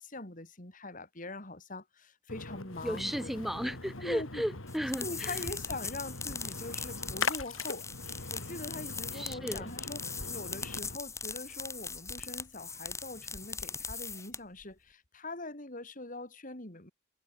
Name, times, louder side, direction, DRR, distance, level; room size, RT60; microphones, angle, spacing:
voice 1, 0.0-3.3 4.0-4.4 5.0-7.9 8.1-16.9, left 2 dB, 40° left, 3.7 m, -43 dB
Splash splatter, 2.3-11.0, left 4 dB, 80° left, 3.6 m, -41 dB
voice 2, 2.8-5.4 9.1-9.7, equal, ahead, 3.3 m, -35 dB
sound 1, 4.7-14.6, left 4 dB, 15° left, 4.9 m, -40 dB
head